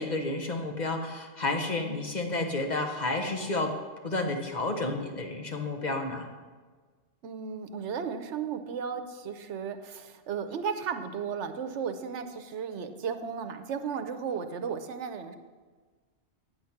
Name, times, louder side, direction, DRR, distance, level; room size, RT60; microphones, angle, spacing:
voice 1, 0.0-3.7 4.0-6.3, left 2 dB, 40° left, 3 dB, 1.0 m, -31 dB
voice 2, 7.2-15.4, right 6 dB, 80° right, 9 dB, 1.0 m, -35 dB
8.7 x 8.0 x 5.8 m, 1.4 s
omnidirectional pair, 1.2 m